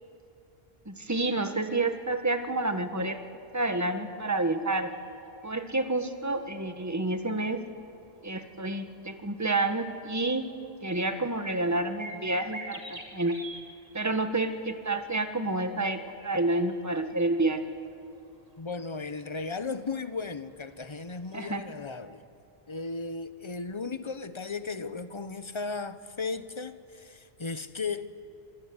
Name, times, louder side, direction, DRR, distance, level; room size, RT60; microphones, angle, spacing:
voice 1, 0.8-3.2 3.5-4.9 5.4-7.6 8.2-10.5 10.8-13.4 13.9-17.7 21.3-21.6, right 2 dB, 15° right, 7 dB, 1.7 m, -29 dB
sound 1, 4.9-21.4, right 1 dB, 35° right, 3.1 m, -51 dB
voice 2, 18.6-22.2 22.7-28.1, left 4 dB, 30° left, 12 dB, 1.1 m, -36 dB
27.0 x 21.5 x 9.8 m, 2.5 s
omnidirectional pair, 1.1 m